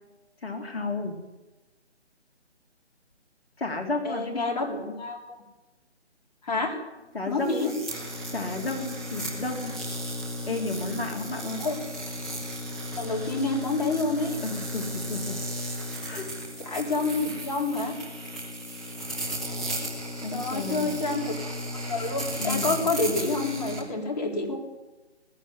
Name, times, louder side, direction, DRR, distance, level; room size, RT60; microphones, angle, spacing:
voice 1, 0.4-1.1 3.6-4.5 7.1-7.8 8.3-9.7 10.5-11.6 14.4-15.4 16.0-16.3 20.2-20.9 22.4-22.8, left 3 dB, 60° left, 2 dB, 3.2 m, -32 dB
voice 2, 4.0-5.4 6.4-6.8 7.3-7.7 11.6-11.8 13.0-14.4 16.6-17.9 20.3-21.3 21.9-24.6, left 3 dB, 35° left, 1 dB, 4.0 m, -28 dB
sound 1, 7.4-23.8, equal, ahead, 0.7 m, -35 dB
20.0 x 13.5 x 9.9 m, 1.1 s
figure-of-eight pair, 155°, 34 cm